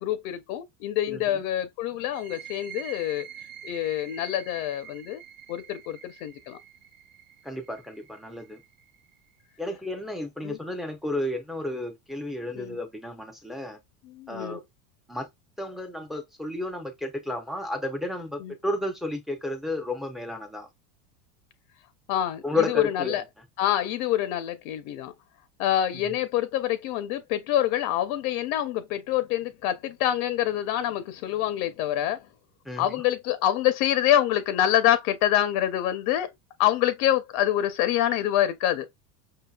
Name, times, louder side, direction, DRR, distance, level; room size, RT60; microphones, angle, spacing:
voice 1, 0.0-3.2 3.6-5.2 5.5-6.6 10.4-10.6 12.5-12.8 14.1-14.6 18.4-18.5 22.1-23.2 23.6-25.1 25.6-32.3 32.8-36.3 36.6-38.9, left 12 dB, 65° left, 0.7 m, -26 dB
voice 2, 1.1-1.4 7.4-8.6 9.6-13.8 14.3-14.6 15.1-15.3 15.6-20.7 22.4-23.2 32.7-32.9, left 2 dB, ahead, 0.4 m, -32 dB
sound 1, 2.0-9.4, right 10 dB, 40° right, 0.7 m, -46 dB
5.5 x 2.8 x 2.3 m
supercardioid pair, 145°, 45 cm